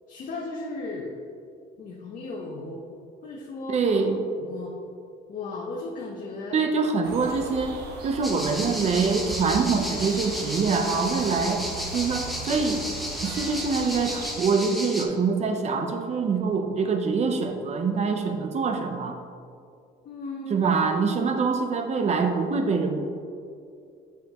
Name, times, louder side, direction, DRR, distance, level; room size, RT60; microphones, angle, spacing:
voice 1, 0.1-1.1 1.8-2.8 3.2-4.7 5.3-6.6 20.0-20.6, left 3 dB, 50° left, -3 dB, 0.9 m, -36 dB
voice 2, 3.7-4.2 6.5-7.8 8.0-11.6 11.9-12.8 13.2-19.2 20.5-23.0, right 4 dB, 40° right, 6 dB, 0.7 m, -25 dB
sound 1, 7.0-14.3, right 3 dB, 75° right, 0.9 m, -38 dB
sound 2, 8.2-15.0, equal, ahead, 0.7 m, -34 dB
7.5 x 5.7 x 3.0 m, 2.4 s
cardioid pair, 110°, 17 cm